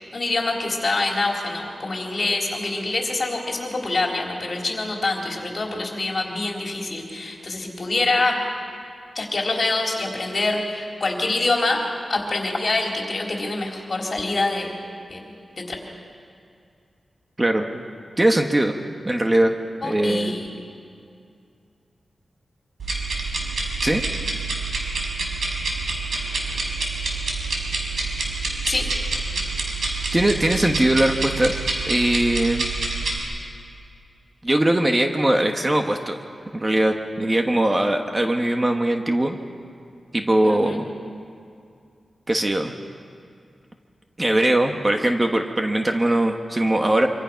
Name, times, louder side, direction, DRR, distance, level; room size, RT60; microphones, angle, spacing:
voice 1, 0.1-8.4 9.1-11.8 12.1-14.7 15.1-15.8 19.8-20.5 28.7-28.8 40.4-40.8, left 2 dB, 45° left, 0 dB, 3.8 m, -25 dB
voice 2, 17.4-17.8 18.2-18.7 19.0-19.6 19.8-20.3 23.8-24.0 30.1-31.5 31.9-32.7 34.4-36.2 36.5-39.4 40.1-40.8 42.3-42.7 44.2-47.1, right 1 dB, 20° right, 4 dB, 1.3 m, -20 dB
sound 1, 22.8-33.2, right 3 dB, 80° right, 4.9 m, -27 dB
25.5 x 25.5 x 5.8 m, 2.4 s
wide cardioid pair, 130°, 0 cm